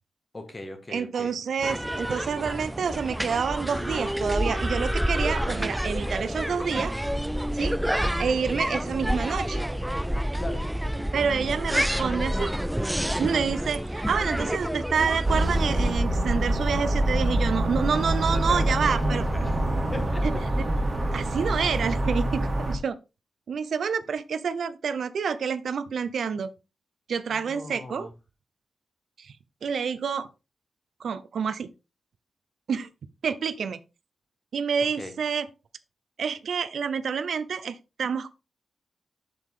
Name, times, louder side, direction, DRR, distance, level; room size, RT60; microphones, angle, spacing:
voice 1, 0.3-1.4 10.4-10.7 11.7-12.1 14.0-14.1 14.6-14.8 18.2-19.6 19.9-20.4 27.3-28.1 35.0-35.1, left 2 dB, 25° left, 2.0 m, -39 dB
voice 2, 0.9-6.9 7.5-7.8 8.2-9.6 11.1-12.5 13.2-19.2 20.2-20.7 21.1-23.0 23.5-26.5 27.1-28.1 29.2-29.3 29.6-30.3 31.0-31.7 32.7-32.9 33.2-33.8 34.5-35.5 36.2-38.4, right 6 dB, 90° right, 0.7 m, -28 dB
sound 1, 1.6-15.9, equal, 5° right, 0.4 m, -28 dB
sound 2, 15.2-22.8, right 1 dB, 30° right, 2.7 m, -25 dB
7.6 x 6.9 x 3.7 m
wide cardioid pair, 130°, 0 cm